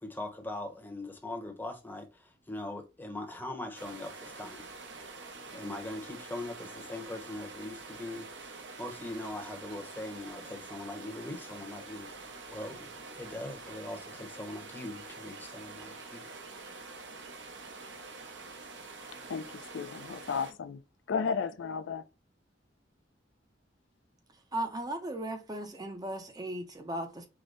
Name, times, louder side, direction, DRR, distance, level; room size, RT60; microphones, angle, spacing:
voice 1, 0.0-4.7 5.5-8.3 8.8-12.9 13.2-16.3, left 2 dB, 10° left, 0.9 m, -41 dB
sound 1, 3.7-20.5, right 3 dB, 75° right, 0.8 m, -46 dB
voice 2, 19.3-20.8 21.1-22.0, left 5 dB, 80° left, 0.4 m, -33 dB
voice 3, 24.5-27.3, right 1 dB, 20° right, 0.6 m, -36 dB
4.8 x 2.1 x 3.9 m
head